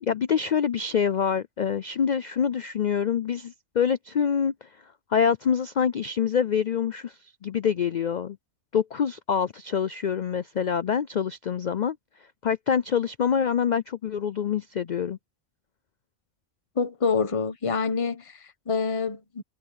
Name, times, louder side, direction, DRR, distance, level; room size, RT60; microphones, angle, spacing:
voice 1, 0.0-4.7 5.1-8.4 8.7-12.0 12.4-15.2, left 7 dB, 80° left, 0.4 m, -26 dB
voice 2, 16.7-19.4, left 5 dB, 25° left, 1.2 m, -27 dB
omnidirectional pair, 1.4 m